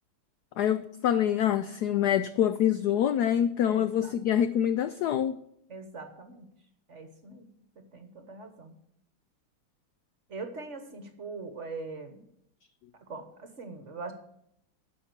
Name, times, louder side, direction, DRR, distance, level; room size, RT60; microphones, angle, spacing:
voice 1, 0.6-5.3, left 10 dB, 80° left, 12 dB, 0.9 m, -25 dB
voice 2, 3.7-4.1 5.7-6.5 6.9-7.5 7.8-8.8 10.3-12.2 13.0-14.1, right 3 dB, 45° right, 7 dB, 1.1 m, -42 dB
11.5 x 5.3 x 8.1 m, 0.75 s
omnidirectional pair, 2.2 m